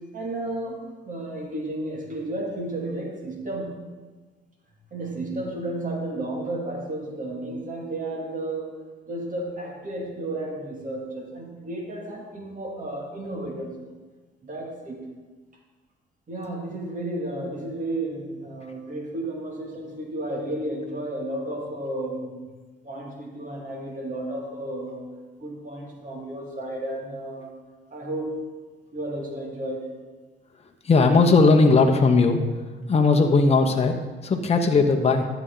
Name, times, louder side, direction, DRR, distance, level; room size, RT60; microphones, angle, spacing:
voice 1, 0.1-0.8 1.0-3.7 4.9-8.7 9.1-14.0 14.4-15.0 16.3-22.4 22.8-25.0 25.4-27.5 27.9-28.4 28.9-29.9, right 1 dB, 40° right, -1 dB, 2.4 m, -32 dB
voice 2, 30.8-32.4 32.9-35.3, left 3 dB, 30° left, 4 dB, 0.9 m, -18 dB
12.5 x 8.1 x 3.9 m, 1.3 s
cardioid pair, 90°, 20 cm